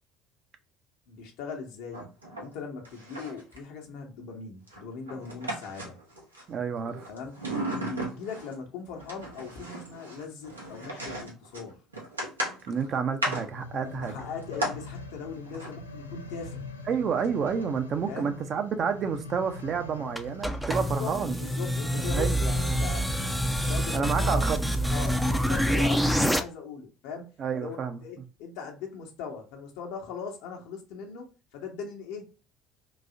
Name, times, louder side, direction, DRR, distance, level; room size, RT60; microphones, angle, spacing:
voice 1, 1.1-2.1 2.4-6.0 7.1-11.8 14.0-16.6 18.1-18.4 20.8-21.1 21.4-23.2 23.5-24.5 24.9-32.3, left 5 dB, 60° left, 0.9 m, -40 dB
sound 1, 1.9-2.6 2.9-3.6 4.7-6.4 6.8-8.5 9.0-14.8 15.5-15.7 17.2-17.3 17.6-17.7, right 1 dB, 85° right, 0.8 m, -36 dB
voice 2, 6.5-7.1 12.6-14.2 16.9-21.5 22.0-22.4 23.9-24.6 27.4-28.0, right 6 dB, 40° right, 0.6 m, -29 dB
sound 2, 13.2-24.5 25.1-25.2, left 3 dB, 80° left, 0.4 m, -44 dB
sound 3, 20.2-26.4, equal, ahead, 0.5 m, -26 dB
3.9 x 2.7 x 2.6 m
figure-of-eight pair, 60°, 0 cm